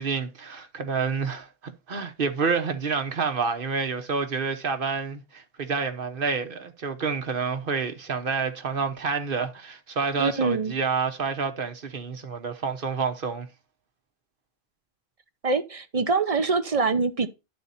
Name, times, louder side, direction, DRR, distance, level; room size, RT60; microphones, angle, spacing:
voice 1, 0.0-13.5, right 5 dB, 60° right, 1.2 m, -28 dB
voice 2, 10.2-10.7 15.4-17.3, right 4 dB, 40° right, 0.7 m, -24 dB
11.0 x 4.3 x 4.1 m
omnidirectional pair, 1.0 m